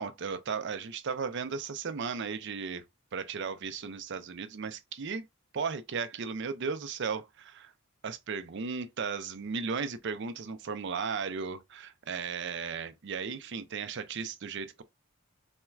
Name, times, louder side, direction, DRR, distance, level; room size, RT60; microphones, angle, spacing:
voice 1, 0.0-2.8 3.1-5.3 5.5-7.7 8.0-14.8, right 5 dB, 55° right, 0.5 m, -35 dB
4.3 x 2.1 x 2.3 m
head